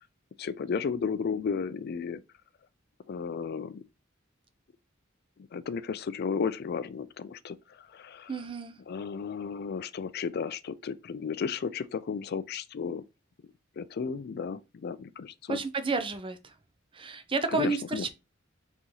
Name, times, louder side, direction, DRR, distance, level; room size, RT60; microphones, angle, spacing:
voice 1, 0.4-2.2 3.1-3.8 5.5-7.6 7.9-8.3 8.9-13.0 13.8-15.6 17.5-18.1, left 6 dB, 50° left, 0.4 m, -33 dB
voice 2, 8.3-8.7 15.5-16.5 16.9-18.1, right 3 dB, 25° right, 0.6 m, -31 dB
4.0 x 3.1 x 3.8 m
head